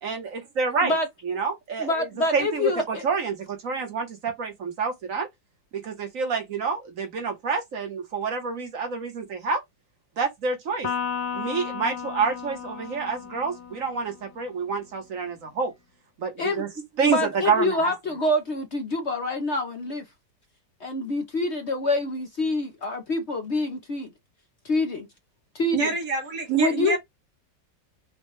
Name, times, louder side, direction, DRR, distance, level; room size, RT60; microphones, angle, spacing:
voice 1, 0.0-1.0 1.2-2.1 2.3-5.3 5.7-9.6 10.2-10.9 11.3-15.7 16.2-16.7 17.0-17.9, right 5 dB, 50° right, 1.5 m, -28 dB
voice 2, 1.8-3.0 16.4-16.7 17.0-20.0 20.8-24.1 24.6-25.1 25.5-25.9 26.5-27.0, left 2 dB, 50° left, 0.9 m, -26 dB
Electric guitar, 10.8-14.4, left 7 dB, 80° left, 1.5 m, -34 dB
voice 3, 25.7-27.0, right 4 dB, 75° right, 2.3 m, -25 dB
5.5 x 2.3 x 3.2 m
omnidirectional pair, 1.9 m